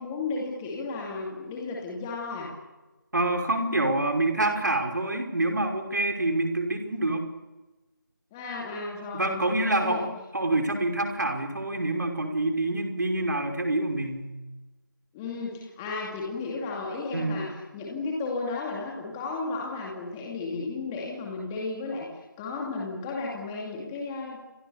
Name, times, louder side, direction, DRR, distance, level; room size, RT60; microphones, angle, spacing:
voice 1, 0.0-2.5 8.3-10.0 15.1-22.1 22.4-24.4, left 3 dB, 10° left, -2 dB, 2.4 m, -34 dB
voice 2, 3.1-7.2 9.1-14.3 17.1-17.5, right 2 dB, 55° right, 4 dB, 5.5 m, -27 dB
29.5 x 25.0 x 6.9 m, 1.1 s
figure-of-eight pair, 170°, 11 cm